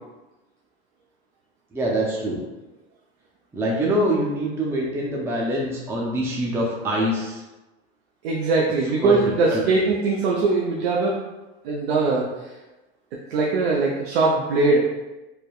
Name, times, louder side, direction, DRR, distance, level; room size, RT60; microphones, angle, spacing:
voice 1, 1.7-2.4 3.5-7.4 9.0-9.2 9.5-9.6, right 1 dB, 10° right, -4 dB, 0.4 m, -24 dB
voice 2, 8.2-11.2 11.6-12.3 13.3-14.8, right 3 dB, 80° right, -3 dB, 0.5 m, -21 dB
3.2 x 2.2 x 2.3 m, 1.1 s
hypercardioid pair, 100°, 30 cm